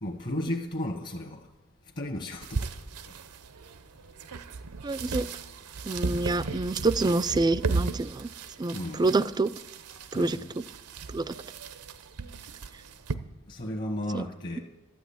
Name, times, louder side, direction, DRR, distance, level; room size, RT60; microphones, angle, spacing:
voice 1, 0.0-1.5 2.0-2.7 8.7-9.1 10.1-10.5 13.5-14.6, left 1 dB, 45° left, 1.2 m, -34 dB
sound 1, 2.4-13.1, right 4 dB, 90° right, 0.7 m, -36 dB
voice 2, 4.8-5.3 5.9-8.3 8.6-9.5 10.1-10.4 11.1-11.3 14.1-14.2, right 3 dB, 20° right, 0.3 m, -27 dB
12.0 x 6.1 x 8.6 m
head